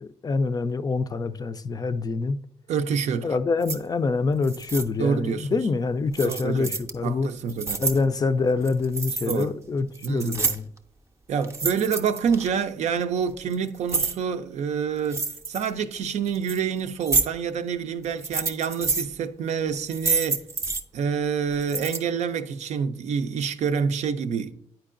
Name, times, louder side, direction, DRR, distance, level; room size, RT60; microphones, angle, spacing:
voice 1, 0.0-2.4 3.2-7.3 7.8-10.7, left 4 dB, 30° left, 0.4 m, -26 dB
voice 2, 2.7-3.4 5.0-5.6 6.2-6.7 7.0-7.8 9.3-9.5 10.0-10.5 11.3-20.4 20.9-24.5, right 6 dB, 75° right, 0.5 m, -27 dB
sound 1, 3.6-3.8 4.4-4.8 6.1-6.9 7.4-8.0 8.6-9.4 9.8-10.8 11.4-12.5 13.3-14.1 15.0-15.7 16.3-16.6 17.0-17.2 18.0-19.1 19.7-20.8 21.6-22.0, right 4 dB, 25° right, 0.6 m, -28 dB
9.0 x 4.5 x 2.5 m
cardioid pair, 95°, 12 cm